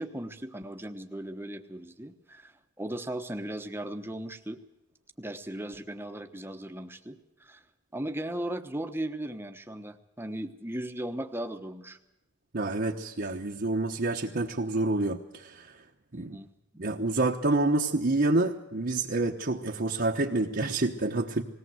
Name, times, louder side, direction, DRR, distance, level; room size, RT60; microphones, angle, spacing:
voice 1, 0.0-4.6 5.2-7.6 7.9-12.0 16.1-16.5 16.7-16.9, right 1 dB, 10° right, 7 dB, 1.1 m, -37 dB
voice 2, 12.5-15.8 16.1-16.4 16.8-21.4, right 2 dB, 50° right, -1 dB, 1.1 m, -28 dB
19.5 x 17.5 x 7.8 m, 0.94 s
head